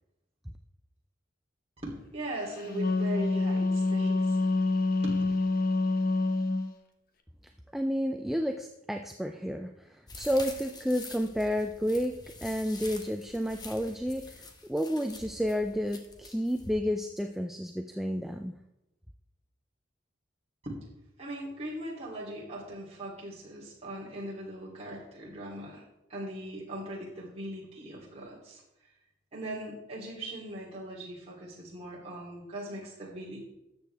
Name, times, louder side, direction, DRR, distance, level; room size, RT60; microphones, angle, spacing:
voice 1, 1.8-4.5 5.0-5.2 20.6-20.8 21.2-25.8 26.1-28.6 29.3-33.4, right 1 dB, 30° right, -5 dB, 3.1 m, -40 dB
Wind instrument woodwind instrument, 2.5-6.7, left 3 dB, 45° left, 1.0 m, -27 dB
voice 2, 7.7-18.6, equal, ahead, 5 dB, 0.3 m, -31 dB
sound 1, 10.1-16.7, left 3 dB, 20° left, 0.9 m, -46 dB
13.0 x 8.0 x 3.4 m, 0.91 s
head